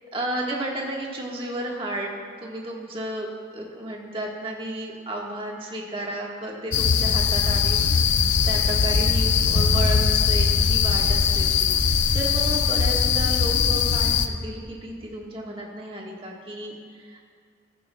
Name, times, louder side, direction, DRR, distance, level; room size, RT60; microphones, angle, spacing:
voice 1, 0.1-2.1 2.4-7.8 8.5-17.3, right 1 dB, 30° right, -2 dB, 1.5 m, -33 dB
sound 1, 6.7-14.3, left 6 dB, 70° left, 0.5 m, -21 dB
15.0 x 13.5 x 2.3 m, 2.2 s
head